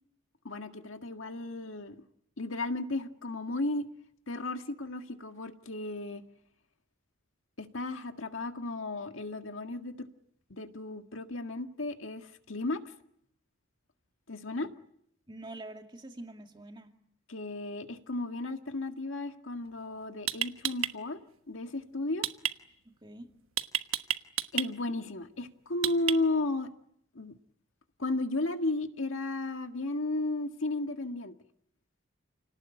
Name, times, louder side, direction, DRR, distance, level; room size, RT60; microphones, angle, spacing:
voice 1, 0.4-2.0 2.4-3.9 4.3-6.2 7.6-10.1 10.5-12.9 14.3-14.7 17.3-21.2 21.5-22.3 24.5-26.7 27.1-27.3 28.0-31.3, left 2 dB, 80° left, 6 dB, 1.8 m, -34 dB
voice 2, 15.3-17.0 22.8-23.3, right 2 dB, 20° right, 4 dB, 2.3 m, -46 dB
sound 1, 19.7-19.8 20.3-20.9 22.2-22.5 23.6-24.7 25.8-26.4, right 11 dB, 85° right, 1.3 m, -30 dB
29.0 x 18.5 x 9.9 m, 0.74 s
head